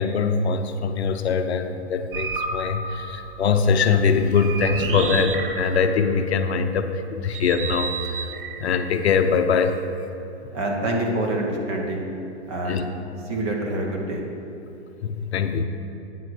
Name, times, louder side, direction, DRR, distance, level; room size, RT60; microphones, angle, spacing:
voice 1, 0.0-8.3 8.6-9.8 12.7-12.9 15.0-15.6, left 5 dB, 65° left, 7 dB, 0.7 m, -22 dB
sound 1, 2.1-6.4 7.3-9.8, right 4 dB, 50° right, 0.7 m, -31 dB
voice 2, 10.5-12.1 12.5-12.9 13.3-14.2, right 1 dB, 25° right, 0 dB, 1.0 m, -26 dB
9.1 x 4.5 x 6.2 m, 2.9 s
hypercardioid pair, 160°, 35 cm